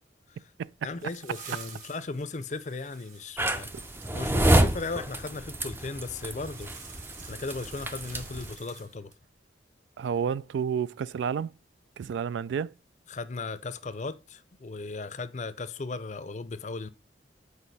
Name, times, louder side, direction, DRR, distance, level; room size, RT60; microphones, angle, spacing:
sound 1, 0.6-4.6 6.3-9.3, right 6 dB, 45° right, 1.3 m, -49 dB
voice 1, 0.8-3.7 4.1-6.7 7.2-9.1 13.1-16.9, left 3 dB, 40° left, 0.5 m, -36 dB
sound 2, 3.4-8.5, right 1 dB, 10° right, 0.4 m, -28 dB
voice 2, 10.0-11.5 12.0-12.7, right 7 dB, 80° right, 0.3 m, -30 dB
8.1 x 4.8 x 4.1 m
head